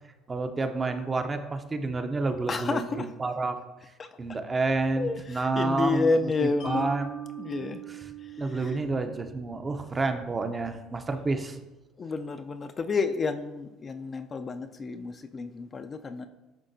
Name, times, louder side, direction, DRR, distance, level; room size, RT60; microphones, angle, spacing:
voice 1, 0.3-3.6 4.2-7.1 7.5-8.0 8.4-11.6, right 3 dB, 25° right, 0.5 m, -29 dB
voice 2, 2.5-3.1 4.0-4.2 5.0-6.9 7.4-7.8 8.2-8.8 12.0-16.3, left 4 dB, 30° left, 0.4 m, -30 dB
Mallet percussion, 6.6-9.9, right 8 dB, 80° left, 1.3 m, -41 dB
10.5 x 3.5 x 2.6 m
supercardioid pair, 105°, 0 cm